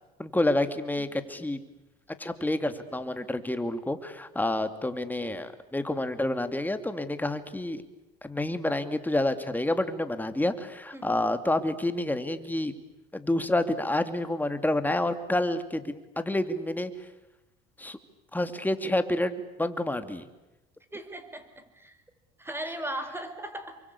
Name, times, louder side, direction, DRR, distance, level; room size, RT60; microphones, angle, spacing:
voice 1, 0.2-1.6 2.2-7.8 8.2-12.7 13.1-17.1 17.8-18.0 18.3-20.2, left 1 dB, 10° left, 9 dB, 2.6 m, -29 dB
voice 2, 20.9-22.0 22.4-23.8, right 1 dB, 10° right, 9 dB, 4.6 m, -38 dB
28.0 x 24.0 x 8.5 m, 1.0 s
supercardioid pair, 85°, 21 cm